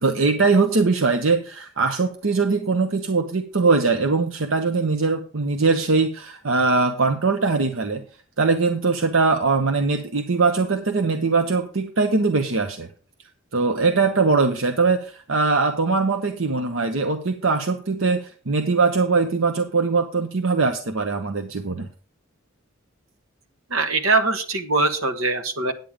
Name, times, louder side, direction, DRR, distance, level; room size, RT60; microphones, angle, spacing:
voice 1, 0.0-8.0 8.4-12.9 13.5-21.9, right 4 dB, 75° right, 7 dB, 0.8 m, -21 dB
voice 2, 23.7-25.7, right 3 dB, 90° right, 6 dB, 1.4 m, -22 dB
9.1 x 8.8 x 5.0 m, 0.39 s
head